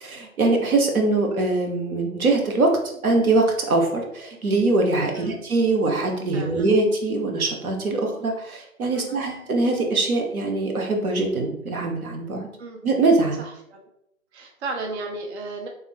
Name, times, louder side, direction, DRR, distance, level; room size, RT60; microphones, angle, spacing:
voice 1, 0.0-12.5 12.8-13.4, right 2 dB, 85° right, 2 dB, 0.9 m, -22 dB
voice 2, 6.3-6.7 8.9-9.2 12.6-12.8 13.4-13.8 14.3-15.7, right 3 dB, 50° right, 2 dB, 0.6 m, -34 dB
3.3 x 2.2 x 3.4 m, 0.79 s
hypercardioid pair, 140°, 42 cm